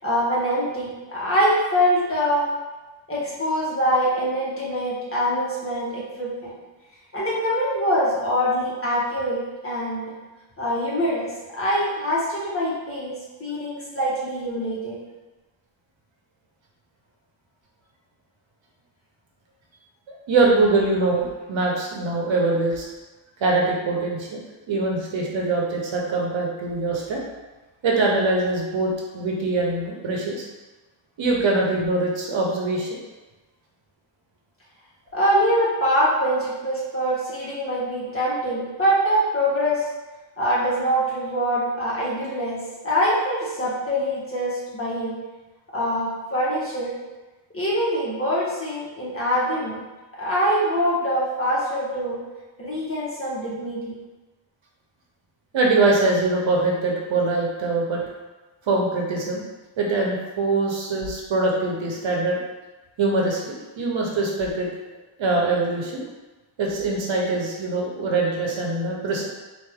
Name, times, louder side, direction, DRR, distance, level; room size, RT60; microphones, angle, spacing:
voice 1, 0.0-2.5 3.1-6.3 7.1-10.1 10.6-11.3 11.5-13.1 13.4-15.0 35.1-39.8 40.4-42.6 42.8-45.1 45.7-46.9 47.5-49.8 50.2-52.2 52.6-53.9, equal, 30° left, -7 dB, 1.4 m, -24 dB
voice 2, 20.3-22.9 23.4-24.4 24.7-27.2 27.8-30.4 31.2-32.9 55.5-58.0 58.7-59.4 59.8-62.4 63.0-64.7 65.2-66.1 66.6-69.3, right 3 dB, 65° right, -1 dB, 1.0 m, -23 dB
4.4 x 2.7 x 3.5 m, 1.2 s
wide cardioid pair, 105°, 48 cm